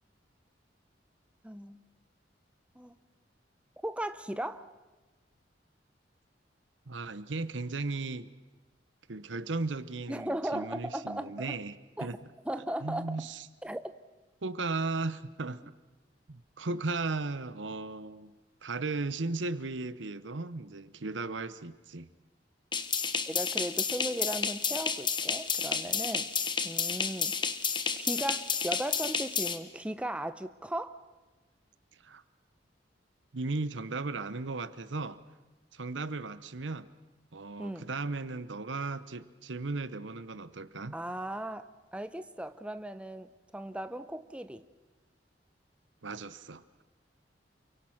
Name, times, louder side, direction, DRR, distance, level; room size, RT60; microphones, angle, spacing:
voice 1, 1.4-1.8 2.8-3.0 3.8-4.7 10.1-11.6 12.0-12.1 12.4-13.3 13.6-13.9 23.3-26.3 26.6-27.4 27.9-31.0 37.6-37.9 40.9-44.6, right 1 dB, 5° right, 10 dB, 0.8 m, -37 dB
voice 2, 6.9-8.3 9.1-12.2 12.8-13.5 14.4-15.6 16.3-18.3 18.6-22.1 32.0-32.2 33.3-35.2 35.7-36.9 37.3-41.0 46.0-46.8, right 3 dB, 85° right, 15 dB, 1.0 m, -36 dB
sound 1, 22.7-29.6, left 6 dB, 25° left, 1.2 m, -31 dB
29.0 x 24.0 x 5.9 m, 1.2 s
head